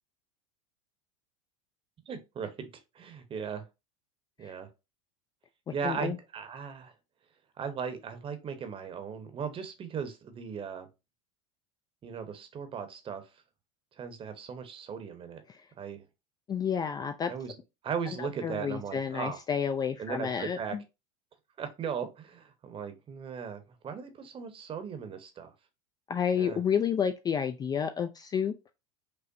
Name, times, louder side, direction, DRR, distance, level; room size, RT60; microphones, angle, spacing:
voice 1, 2.1-2.7 2.9-3.6 4.4-4.7 5.7-6.9 7.6-10.9 12.0-13.2 14.0-15.4 15.8-16.0 17.3-17.5 17.8-19.4 20.0-20.8 21.6-25.5 26.4-26.6, right 6 dB, 30° right, 0.8 m, -37 dB
voice 2, 5.7-6.2 15.5-15.6 16.5-17.3 18.2-20.8 26.1-28.5, left 7 dB, 20° left, 0.3 m, -30 dB
5.3 x 2.0 x 2.5 m
hypercardioid pair, 100°, 18 cm